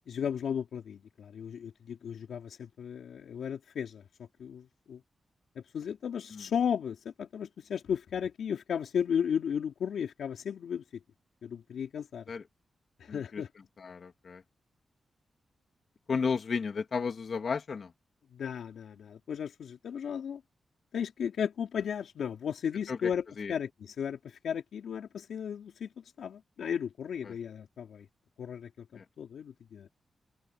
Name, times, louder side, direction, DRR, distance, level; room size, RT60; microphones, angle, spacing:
voice 1, 0.1-4.0 4.4-5.0 5.6-11.0 11.4-12.3 13.0-13.5 18.3-20.4 20.9-23.2 23.5-28.1 28.4-29.9, left 8 dB, 90° left, 3.7 m, -35 dB
voice 2, 13.1-13.4 13.8-14.4 16.1-17.9 22.9-23.1 23.4-23.5 27.2-27.4 28.9-29.0, left 5 dB, 55° left, 2.6 m, -33 dB
wide cardioid pair, 105°, 0 cm